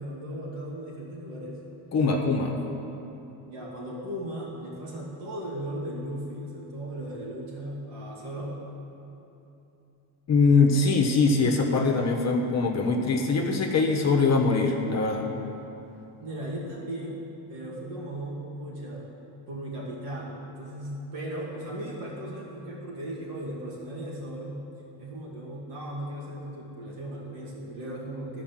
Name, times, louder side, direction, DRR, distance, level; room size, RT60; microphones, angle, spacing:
voice 1, 0.0-1.6 3.5-8.6 16.2-19.1 19.5-24.6 25.0-28.4, right 1 dB, 80° right, -5 dB, 2.6 m, -37 dB
voice 2, 1.9-2.6 10.3-15.3, left 4 dB, 40° left, 1 dB, 1.2 m, -22 dB
12.0 x 4.9 x 7.6 m, 2.9 s
cardioid pair, 140°, 41 cm